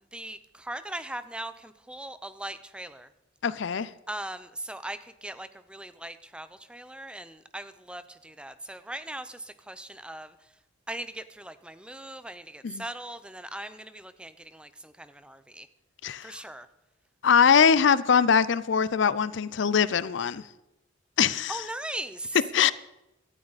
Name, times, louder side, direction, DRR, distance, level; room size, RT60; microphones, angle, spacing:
voice 1, 0.1-3.1 4.1-10.4 10.9-15.7 16.2-16.7 21.3-22.4, right 1 dB, 5° right, 0.6 m, -39 dB
voice 2, 3.4-3.9 12.6-12.8 16.0-16.4 17.2-20.4 21.2-21.6 22.5-22.7, left 7 dB, 60° left, 0.5 m, -22 dB
17.5 x 12.5 x 4.1 m
head